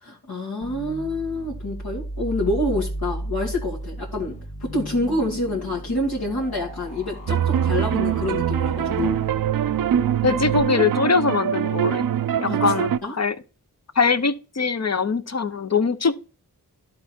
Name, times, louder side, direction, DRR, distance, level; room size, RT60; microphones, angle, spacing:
voice 1, 0.0-9.2 12.5-12.6 13.0-13.1, left 1 dB, 65° left, 2.1 m, -27 dB
sound 1, 0.6-10.6, right 1 dB, 85° left, 2.4 m, -35 dB
sound 2, 7.3-13.0, right 10 dB, 60° right, 0.5 m, -23 dB
voice 2, 10.2-12.1 12.4-13.4 14.0-16.3, left 5 dB, 40° left, 0.7 m, -22 dB
11.5 x 4.0 x 4.3 m
cardioid pair, 40°, 39 cm